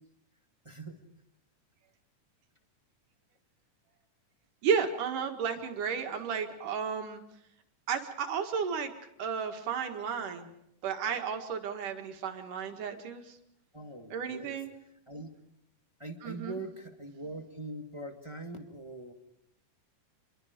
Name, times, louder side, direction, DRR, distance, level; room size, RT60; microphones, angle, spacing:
voice 1, 0.6-1.0 13.7-14.6 15.1-15.3 16.0-19.1, right 2 dB, 15° right, 4 dB, 0.9 m, -42 dB
voice 2, 4.6-7.2 7.9-8.9 9.2-10.5 10.8-13.4 14.1-14.7 16.2-16.6, right 6 dB, 80° right, 5 dB, 3.4 m, -33 dB
28.0 x 22.5 x 5.2 m, 0.79 s
omnidirectional pair, 3.6 m